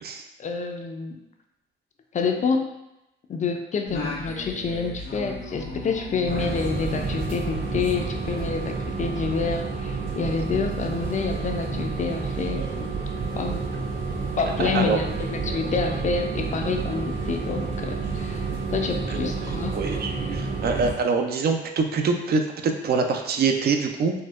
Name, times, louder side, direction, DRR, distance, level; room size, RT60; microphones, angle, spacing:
voice 1, 0.4-1.2 2.1-2.7 3.3-12.9 13.4-13.6 14.4-18.4 18.7-19.8, left 5 dB, 40° left, 4 dB, 0.4 m, -28 dB
Singing, 3.9-8.6, left 2 dB, 90° left, 1.2 m, -37 dB
sound 1, 6.2-20.9, right 4 dB, 70° right, 1.5 m, -30 dB
voice 2, 14.6-15.0 19.1-24.1, right 4 dB, 50° right, 4 dB, 0.4 m, -25 dB
4.2 x 2.1 x 2.4 m, 0.91 s
cardioid pair, 90°, 20 cm